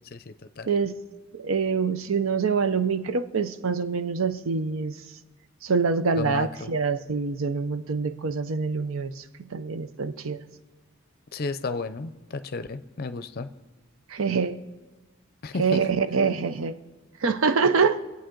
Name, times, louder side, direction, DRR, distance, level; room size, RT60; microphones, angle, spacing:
voice 1, 0.1-0.7 6.1-6.7 11.3-13.5 15.4-15.8, left 3 dB, 45° left, 12 dB, 0.5 m, -33 dB
voice 2, 1.3-5.0 5.6-9.2 9.5-10.4 14.1-14.6 15.6-16.7 17.2-18.0, right 5 dB, 75° right, 11 dB, 0.6 m, -25 dB
24.0 x 8.4 x 3.8 m, 1.2 s
head